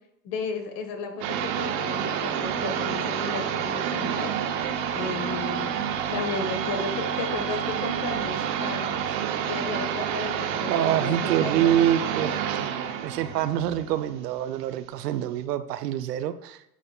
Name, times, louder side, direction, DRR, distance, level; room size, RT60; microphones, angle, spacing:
voice 1, 0.2-4.3 4.9-5.7 6.1-9.0 9.4-11.1 11.4-11.9, left 5 dB, 50° left, 6 dB, 1.3 m, -34 dB
sound 1, 1.2-14.6, right 8 dB, 45° right, 0.8 m, -29 dB
voice 2, 10.7-12.4 13.0-16.6, right 11 dB, 75° right, 12 dB, 0.6 m, -25 dB
10.0 x 4.2 x 2.3 m, 0.81 s
hypercardioid pair, 95°, 48 cm